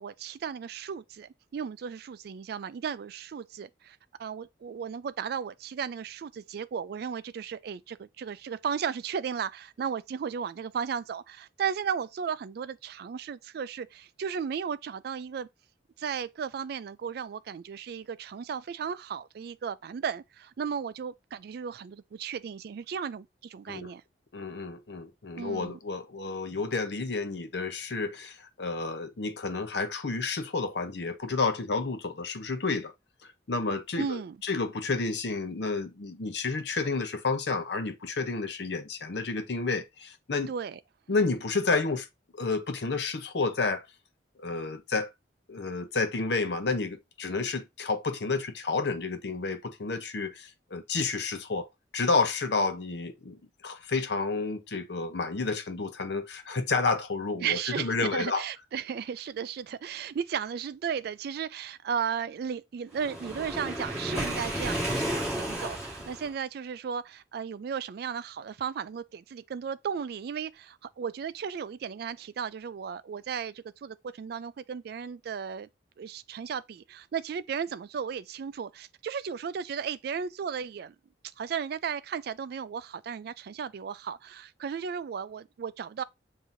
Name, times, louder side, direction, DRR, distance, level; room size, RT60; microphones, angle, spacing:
voice 1, 0.0-15.5 16.0-24.0 25.4-25.8 34.0-34.4 40.5-40.8 57.4-75.7 76.0-80.9 81.4-86.0, right 7 dB, 60° right, 0.3 m, -35 dB
voice 2, 24.3-32.9 33.2-40.5 41.1-42.1 42.3-43.9 44.4-45.1 45.5-51.7 51.9-58.4, left 3 dB, 65° left, 0.7 m, -30 dB
Waves surf, 63.0-66.3, equal, 5° right, 2.5 m, -32 dB
7.2 x 2.8 x 2.6 m
head